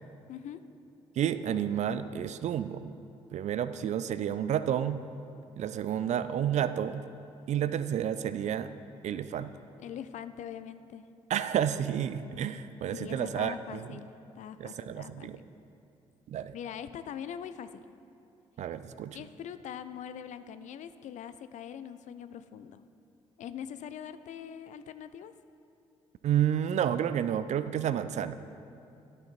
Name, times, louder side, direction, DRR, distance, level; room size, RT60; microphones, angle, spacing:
voice 1, 0.3-0.6 9.8-11.1 12.9-14.1 14.3-15.4 16.5-17.7 19.1-22.8 23.4-25.3, left 9 dB, 55° left, 12 dB, 0.4 m, -42 dB
voice 2, 1.2-2.9 3.3-5.0 5.6-7.0 7.5-8.7 9.0-9.5 11.3-14.0 14.6-15.4 16.3-16.5 18.6-19.2 26.2-28.3, right 9 dB, 50° right, 13 dB, 0.4 m, -30 dB
11.5 x 6.5 x 4.4 m, 2.6 s
hypercardioid pair, 40°, 15 cm